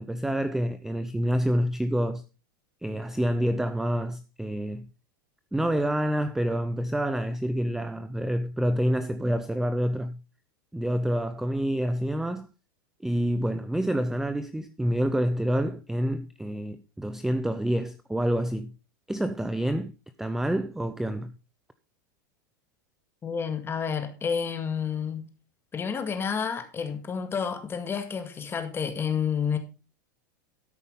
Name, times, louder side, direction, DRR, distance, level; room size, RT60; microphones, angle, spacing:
voice 1, 0.0-2.2 2.8-4.9 5.5-10.2 10.7-12.5 13.0-18.7 19.1-19.9 20.2-21.3, equal, 5° right, 0.6 m, -27 dB
voice 2, 23.2-25.3 25.7-29.6, left 7 dB, 20° left, 2.0 m, -30 dB
13.0 x 5.6 x 5.2 m
supercardioid pair, 120°, 11 cm